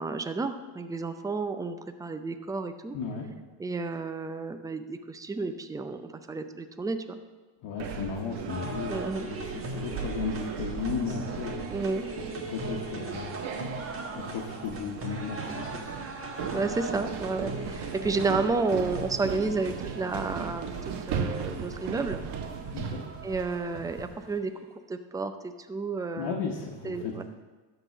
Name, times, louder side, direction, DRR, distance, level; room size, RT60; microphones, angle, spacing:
voice 1, 0.0-3.0 3.6-7.2 8.9-9.3 11.7-12.0 16.5-22.2 23.2-24.5 24.9-26.4 26.8-27.2, right 3 dB, 10° right, 8 dB, 0.4 m, -31 dB
voice 2, 2.9-3.3 7.6-11.7 12.5-13.4 14.1-16.0 22.7-23.0 26.1-27.2, left 5 dB, 65° left, -2 dB, 1.4 m, -35 dB
sound 1, 7.8-24.3, right 6 dB, 55° right, 1.1 m, -37 dB
sound 2, 8.5-24.5, right 2 dB, 25° right, 1.4 m, -40 dB
12.0 x 4.0 x 7.3 m, 1.3 s
cardioid pair, 115°, 48 cm